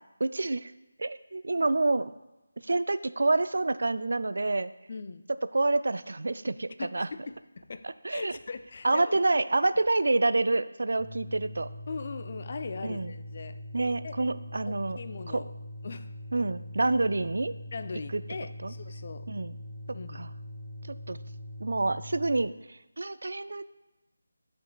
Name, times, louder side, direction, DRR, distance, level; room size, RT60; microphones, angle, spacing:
voice 1, 0.2-0.7 1.0-2.1 2.6-4.7 5.5-7.1 7.8-8.3 8.8-11.7 12.8-13.1 13.7-15.0 15.3-15.4 16.3-17.5 18.1-18.2 18.6-18.7 19.3-19.6 20.1-20.3 21.1-21.2 21.6-23.7, right 2 dB, 60° right, 14 dB, 0.3 m, -27 dB
voice 2, 4.9-5.2 6.8-7.9 8.1-9.2 11.9-13.6 14.0-14.2 14.6-15.5 15.8-16.1 17.7-19.3 19.9-20.2, left 4 dB, 40° left, 10 dB, 0.4 m, -40 dB
sound 1, 11.0-22.4, left 1 dB, ahead, 1.5 m, -42 dB
11.0 x 5.2 x 2.3 m, 1.0 s
figure-of-eight pair, 160°, 0 cm